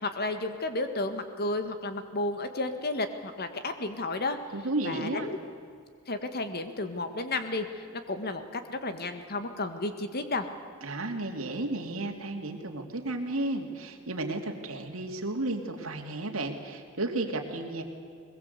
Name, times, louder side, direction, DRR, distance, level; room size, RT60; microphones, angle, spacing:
voice 1, 0.0-4.4 4.8-5.4 6.1-10.5, left 2 dB, 50° left, 8 dB, 1.8 m, -32 dB
voice 2, 4.5-5.3 10.8-17.8, right 2 dB, 70° right, 3 dB, 2.7 m, -33 dB
22.0 x 21.5 x 8.3 m, 2.3 s
head